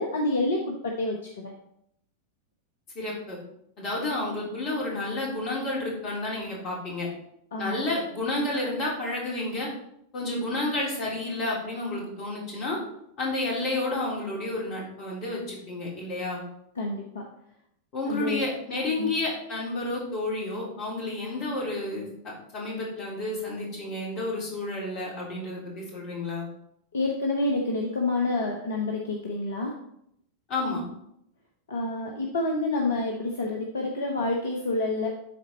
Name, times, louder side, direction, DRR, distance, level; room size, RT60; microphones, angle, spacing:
voice 1, 0.0-1.5 7.5-7.8 16.8-17.2 18.1-18.5 19.0-19.1 26.9-29.7 31.7-35.1, left 2 dB, 65° left, 1 dB, 0.9 m, -28 dB
voice 2, 2.9-3.4 3.8-7.1 7.6-9.7 10.1-12.8 13.2-16.4 17.9-22.1 22.5-26.4 30.5-30.8, left 2 dB, 40° left, -3 dB, 3.3 m, -30 dB
11.0 x 4.1 x 4.1 m, 0.75 s
figure-of-eight pair, 90°, 0 cm